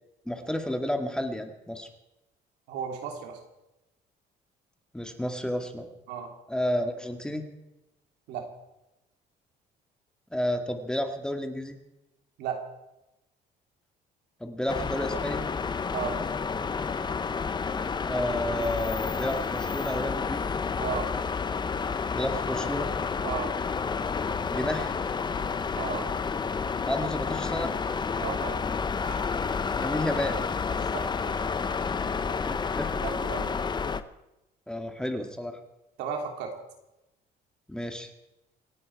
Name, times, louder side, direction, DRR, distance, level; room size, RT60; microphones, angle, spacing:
voice 1, 0.3-1.9 4.9-5.9 6.5-7.5 10.3-11.8 14.4-15.4 18.1-20.5 22.1-22.9 24.5-24.9 26.8-27.8 29.8-30.4 32.4-33.0 34.7-35.6 37.7-38.1, left 1 dB, 5° left, 5 dB, 1.9 m, -31 dB
voice 2, 2.7-3.4 6.1-6.3 8.3-8.4 12.4-12.6 15.9-16.2 20.8-21.1 23.2-23.5 25.8-26.0 28.2-28.5 29.0-29.2 30.9-31.3 33.0-33.6 36.0-36.5, right 7 dB, 90° right, 3 dB, 3.1 m, -34 dB
sound 1, 14.7-34.0, left 5 dB, 25° left, 0.8 m, -30 dB
27.0 x 9.5 x 4.7 m, 0.93 s
cardioid pair, 110°, 17 cm